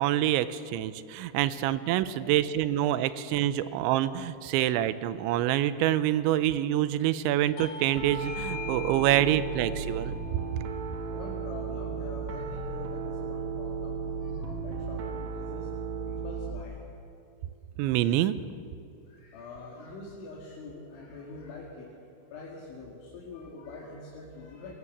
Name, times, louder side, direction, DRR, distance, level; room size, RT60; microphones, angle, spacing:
voice 1, 0.0-10.1 10.5-10.6 17.8-18.4, right 13 dB, 85° right, 14 dB, 3.1 m, -26 dB
voice 2, 1.3-1.7 2.0-2.4 2.8-3.1 3.6-3.7 4.3-4.7 7.1-7.4 10.2-10.6 11.0-15.7 16.0-16.8 19.1-21.9 22.3-24.8, left 3 dB, 80° left, -4 dB, 4.7 m, -45 dB
Bell / Doorbell, 7.6-12.6, left 5 dB, 60° left, 1.0 m, -44 dB
Piano, 8.0-16.6, right 5 dB, 55° right, 2.0 m, -35 dB
22.5 x 17.5 x 7.3 m, 2.5 s
omnidirectional pair, 5.3 m